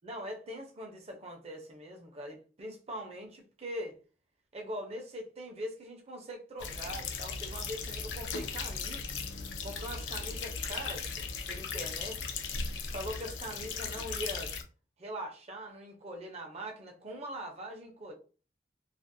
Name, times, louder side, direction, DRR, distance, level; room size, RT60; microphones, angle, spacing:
voice 1, 0.0-4.0 4.5-9.1 9.6-12.3 12.9-14.6 15.0-18.1, equal, 35° right, 0.6 m, -42 dB
sound 1, 6.6-14.6, left 5 dB, 80° left, 0.4 m, -37 dB
2.4 x 2.0 x 2.6 m
head